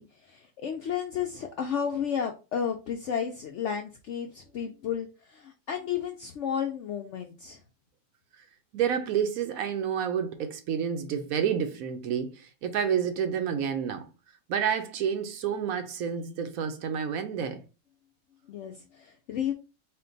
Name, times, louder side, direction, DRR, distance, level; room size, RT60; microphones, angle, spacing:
voice 1, 0.0-7.6 18.5-19.5, left 8 dB, 75° left, 0.6 m, -32 dB
voice 2, 8.7-14.1 14.5-17.6, right 8 dB, 65° right, 1.0 m, -29 dB
4.4 x 2.2 x 3.8 m
omnidirectional pair, 1.7 m